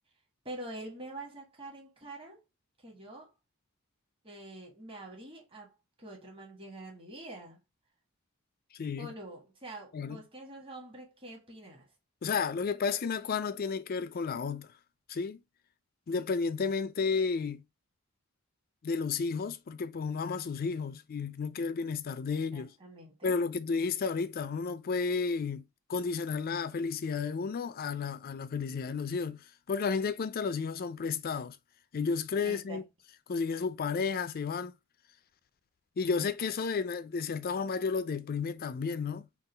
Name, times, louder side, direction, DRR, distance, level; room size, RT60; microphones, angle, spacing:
voice 1, 0.4-2.4 2.8-3.3 4.2-7.6 9.0-11.9 22.5-23.4 32.4-32.8, right 1 dB, 25° right, 1.3 m, -46 dB
voice 2, 8.7-9.1 9.9-10.2 12.2-14.7 15.1-15.4 16.1-17.6 18.8-22.7 23.2-25.6 25.9-31.6 31.9-32.8 33.3-34.7 36.0-39.3, left 5 dB, 45° left, 0.4 m, -32 dB
3.8 x 2.4 x 4.0 m
head